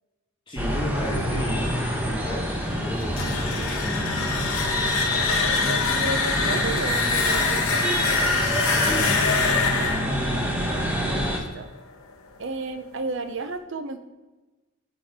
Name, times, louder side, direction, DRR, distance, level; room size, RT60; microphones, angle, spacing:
voice 1, 0.5-3.3 8.8-9.5, equal, 20° left, -7 dB, 1.2 m, -33 dB
sound 1, 0.6-11.4, equal, 10° right, 0.9 m, -27 dB
sound 2, 3.0-11.8, left 4 dB, 75° left, 1.0 m, -25 dB
voice 2, 4.8-8.1 11.1-11.7 12.4-14.1, right 3 dB, 55° right, 10 dB, 0.6 m, -33 dB
6.8 x 4.9 x 5.8 m, 1.2 s
head